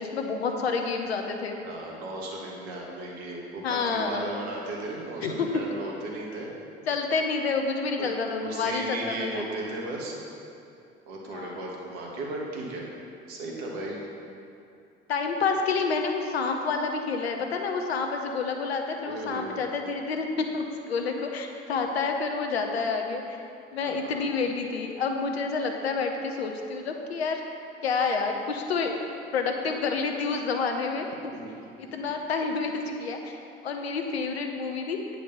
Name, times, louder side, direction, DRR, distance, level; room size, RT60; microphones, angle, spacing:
voice 1, 0.0-1.6 3.6-4.3 5.2-5.5 6.9-9.5 11.3-11.6 15.1-23.4 23.7-27.4 27.8-28.9 29.3-31.3 31.8-33.4 33.6-35.0, left 4 dB, 90° left, 4 dB, 0.8 m, -29 dB
voice 2, 1.6-6.5 8.0-10.2 11.1-12.9 13.3-14.1 19.1-19.7 23.8-24.3 31.3-31.5, right 2 dB, 75° right, -2 dB, 1.8 m, -36 dB
8.6 x 5.1 x 6.7 m, 2.6 s
hypercardioid pair, 55°, 30 cm